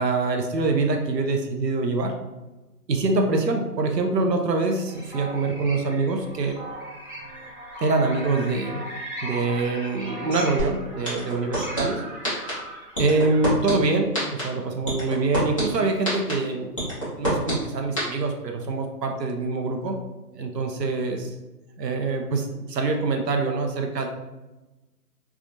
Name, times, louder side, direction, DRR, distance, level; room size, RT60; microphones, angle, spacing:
voice 1, 0.0-2.1 2.9-6.6 7.8-8.8 9.2-12.0 13.0-16.9 17.2-20.0 20.3-21.3 21.8-24.1, right 3 dB, 90° right, 3 dB, 0.8 m, -25 dB
sound 1, 4.9-13.5, right 1 dB, 35° right, 0.6 m, -38 dB
sound 2, 10.6-10.7 11.0-11.8 12.2-12.5 12.9-13.7 14.1-14.4 14.9-15.6 16.0-16.3 16.8-17.5 18.0-18.1, equal, 20° left, 0.7 m, -26 dB
3.4 x 2.4 x 2.6 m, 1.1 s
hypercardioid pair, 170°, 48 cm